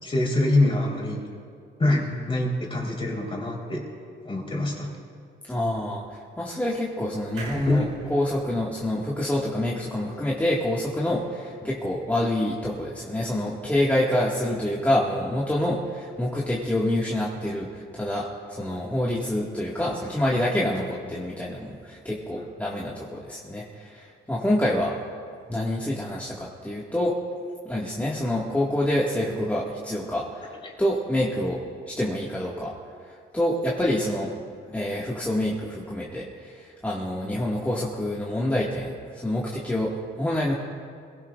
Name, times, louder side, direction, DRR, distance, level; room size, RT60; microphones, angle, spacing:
voice 1, 0.0-1.2 1.8-2.0 2.3-3.8 4.2-4.9 7.5-7.8 22.4-22.5 30.6-30.7, left 1 dB, 25° left, -1 dB, 3.8 m, -24 dB
voice 2, 5.5-6.0 6.4-25.0 25.5-27.2 27.7-30.5 30.8-31.6 31.9-32.7 33.1-34.3 34.7-40.5, left 1 dB, 10° left, -5 dB, 1.9 m, -27 dB
sound 1, 7.4-10.8 11.2-11.3 11.5-11.6, right 2 dB, 90° right, 3.9 m, -44 dB
23.5 x 16.5 x 2.5 m, 2.2 s
cardioid pair, 90°, 20 cm